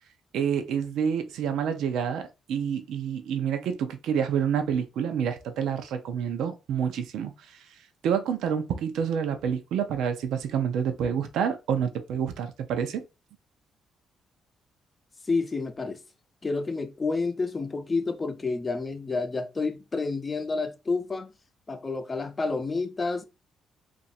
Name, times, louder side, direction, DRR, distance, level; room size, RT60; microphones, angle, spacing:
voice 1, 0.3-7.3 8.0-13.0, right 8 dB, 80° right, 0.6 m, -28 dB
voice 2, 15.2-16.0 16.4-21.3 21.7-23.3, left 3 dB, 25° left, 0.6 m, -29 dB
3.0 x 2.5 x 4.2 m
cardioid pair, 90°, 0 cm